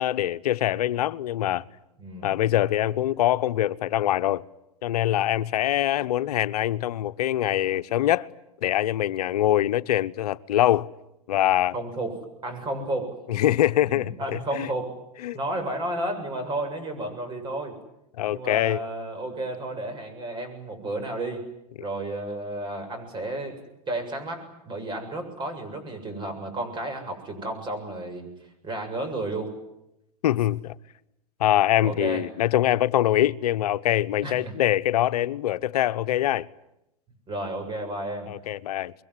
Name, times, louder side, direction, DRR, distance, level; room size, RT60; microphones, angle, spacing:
voice 1, 0.0-1.7 2.2-4.4 4.8-8.3 8.6-10.9 11.3-11.8 13.3-14.7 15.2-15.4 18.2-18.8 30.2-30.7 31.4-36.5 38.3-38.9, left 13 dB, 75° left, 0.9 m, -24 dB
voice 2, 2.0-2.4 11.7-13.1 13.9-14.9 15.3-17.8 18.3-21.4 21.8-23.6 23.9-28.3 28.6-29.5 31.8-32.2 34.2-34.5 37.3-38.3, right 1 dB, 25° right, 7.5 m, -32 dB
26.0 x 22.0 x 9.8 m
hypercardioid pair, 120°, 20 cm